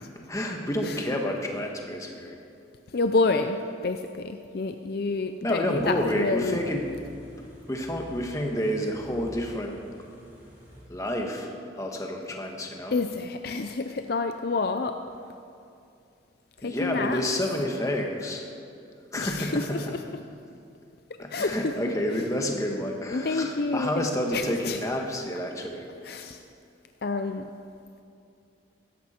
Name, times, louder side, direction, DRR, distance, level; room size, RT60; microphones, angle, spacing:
voice 1, 0.3-2.4 5.4-6.9 7.7-9.8 10.9-13.0 16.6-18.5 19.1-19.8 21.2-25.9, left 1 dB, 15° left, 1 dB, 1.4 m, -29 dB
voice 2, 2.9-6.6 12.9-14.9 16.6-17.2 19.2-20.0 21.3-21.9 23.1-24.8 26.0-26.4 27.0-27.4, left 3 dB, 50° left, 7 dB, 0.5 m, -28 dB
Car / Idling, 5.7-10.8, equal, 10° right, 4.1 m, -48 dB
16.5 x 13.5 x 4.4 m, 2.5 s
head